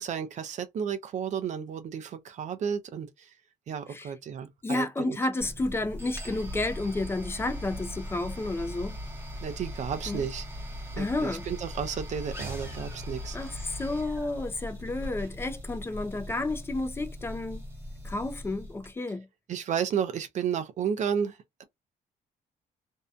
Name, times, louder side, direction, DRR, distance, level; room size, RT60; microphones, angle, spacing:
voice 1, 0.0-3.3 3.7-5.2 9.4-10.4 10.9-13.4 19.5-21.6, right 7 dB, 50° right, 0.5 m, -32 dB
voice 2, 4.6-9.0 10.1-10.2 11.0-11.4 13.3-17.6 18.0-19.3, left 2 dB, 15° left, 0.4 m, -31 dB
sound 1, 5.4-18.9, equal, 15° right, 0.8 m, -39 dB
2.7 x 2.1 x 2.4 m
cardioid pair, 155°, 15 cm